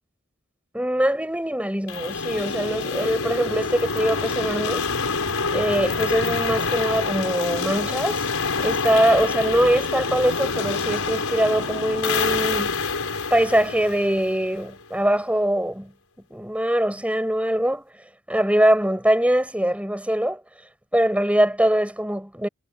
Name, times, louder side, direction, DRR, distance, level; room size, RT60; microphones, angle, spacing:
voice 1, 0.7-4.9 5.5-8.3 8.6-12.8 13.3-15.9 16.3-17.9 18.3-20.4 20.9-22.5, right 1 dB, 5° right, 5.7 m, -22 dB
sound 1, 1.9-14.8, left 4 dB, 80° left, 5.1 m, -26 dB
head